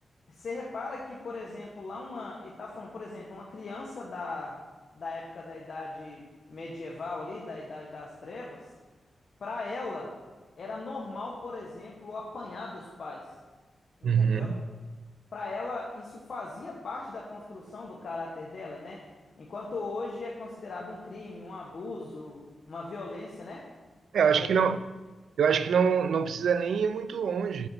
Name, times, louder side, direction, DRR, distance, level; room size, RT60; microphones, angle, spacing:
voice 1, 0.3-4.6 4.9-6.2 6.5-8.7 9.4-10.1 10.6-13.2 14.0-14.5 15.3-19.0 19.4-22.4 22.7-23.6 24.2-24.6, left 3 dB, 65° left, 1.4 m, -38 dB
voice 2, 14.0-14.6 24.1-24.8 25.4-27.7, right 6 dB, 90° right, 0.4 m, -25 dB
6.9 x 6.8 x 5.8 m
cardioid pair, 90°, 0 cm